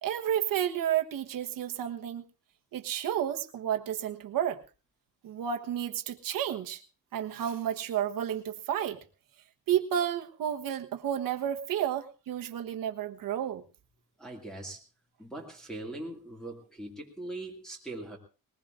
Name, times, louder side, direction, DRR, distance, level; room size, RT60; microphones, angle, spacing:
voice 1, 0.0-2.2 2.7-4.6 5.2-6.8 7.1-9.0 9.7-13.6, right 10 dB, 65° right, 5 dB, 1.3 m, -31 dB
voice 2, 14.2-14.8 15.2-18.2, right 2 dB, ahead, -3 dB, 2.3 m, -41 dB
20.5 x 19.5 x 2.6 m, 0.33 s
cardioid pair, 175°, 35 cm